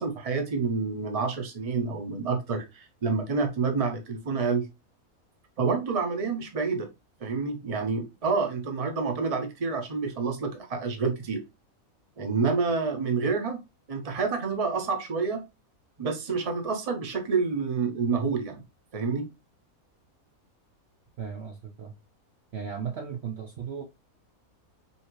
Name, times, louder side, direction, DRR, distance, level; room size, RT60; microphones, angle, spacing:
voice 1, 0.0-4.7 5.6-6.9 7.2-11.4 12.2-13.6 13.9-15.4 16.0-18.6 18.9-19.3, right 4 dB, 30° right, 0.9 m, -28 dB
voice 2, 21.2-21.9 22.5-23.8, right 7 dB, 55° right, 0.8 m, -36 dB
5.5 x 2.8 x 3.0 m
omnidirectional pair, 1.5 m